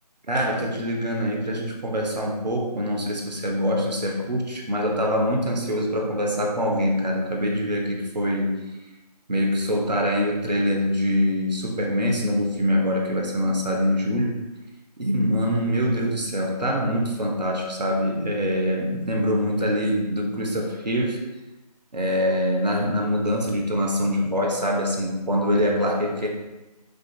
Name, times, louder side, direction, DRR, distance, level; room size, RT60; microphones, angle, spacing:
voice 1, 0.3-8.6 9.3-14.4 15.0-21.2 21.9-26.3, equal, 80° right, 0 dB, 0.9 m, -24 dB
4.9 x 2.7 x 2.4 m, 1.0 s
figure-of-eight pair, 160°, 21 cm